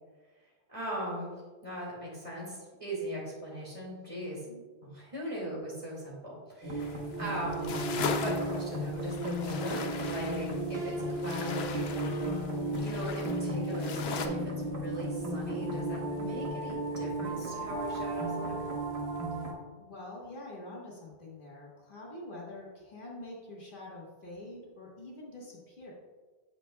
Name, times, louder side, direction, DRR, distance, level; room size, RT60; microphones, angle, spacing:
voice 1, 0.7-1.3 1.6-4.4 4.8-12.4 12.8-18.6, equal, 30° right, -5 dB, 2.1 m, -39 dB
sound 1, 6.6-19.5, right 1 dB, 80° right, 1.4 m, -34 dB
sound 2, 6.8-14.3, left 6 dB, 75° left, 0.8 m, -39 dB
voice 2, 19.8-25.9, left 2 dB, 55° left, -4 dB, 1.5 m, -46 dB
8.6 x 6.9 x 2.2 m, 1.4 s
omnidirectional pair, 1.1 m